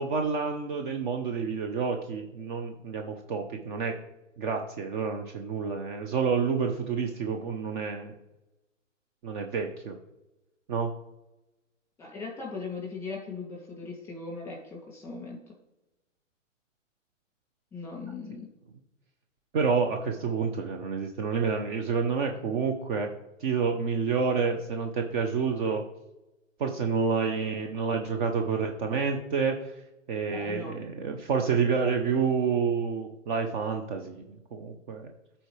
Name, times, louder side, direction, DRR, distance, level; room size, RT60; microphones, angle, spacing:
voice 1, 0.0-3.9 4.4-8.1 9.2-9.9 10.7-10.9 19.5-23.1 23.4-25.8 26.6-29.7 30.1-35.1, right 5 dB, 40° right, 4 dB, 0.9 m, -29 dB
voice 2, 12.0-15.4 17.7-18.5 30.3-30.7, left 4 dB, 5° left, -1 dB, 2.6 m, -39 dB
13.0 x 4.3 x 3.3 m, 0.96 s
hypercardioid pair, 130°, 39 cm